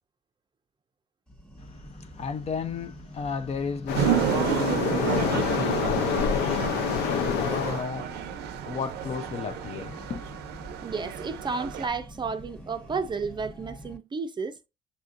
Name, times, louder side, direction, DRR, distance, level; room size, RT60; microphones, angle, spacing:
sound 1, 1.3-14.0, equal, 5° left, 1.1 m, -45 dB
voice 1, 1.6-10.4, left 5 dB, 40° left, 0.5 m, -35 dB
Waves surf, 3.9-7.9, left 7 dB, 85° left, 0.6 m, -27 dB
sound 2, 3.9-11.9, right 11 dB, 80° right, 0.6 m, -31 dB
voice 2, 10.8-14.6, right 4 dB, 25° right, 0.5 m, -32 dB
6.7 x 2.5 x 2.5 m
cardioid pair, 110°, 17 cm